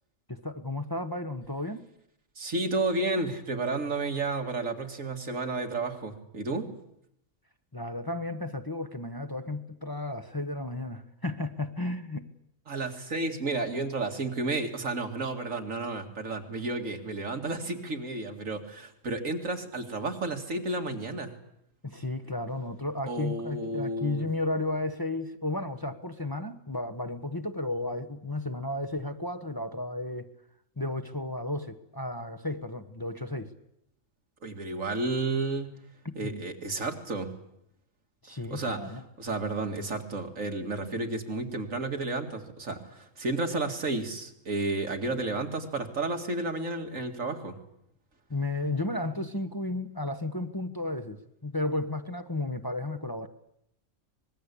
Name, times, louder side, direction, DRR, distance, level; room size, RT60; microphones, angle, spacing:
voice 1, 0.3-1.9 7.7-12.3 21.8-30.3 30.8-33.5 36.0-36.4 38.2-39.0 48.3-53.3, left 2 dB, 20° left, 6 dB, 1.1 m, -33 dB
voice 2, 2.4-6.7 12.7-21.3 23.1-24.3 34.4-35.7 36.2-37.4 38.5-47.6, right 2 dB, 85° right, 4 dB, 2.7 m, -32 dB
25.0 x 20.5 x 8.5 m, 0.78 s
omnidirectional pair, 1.3 m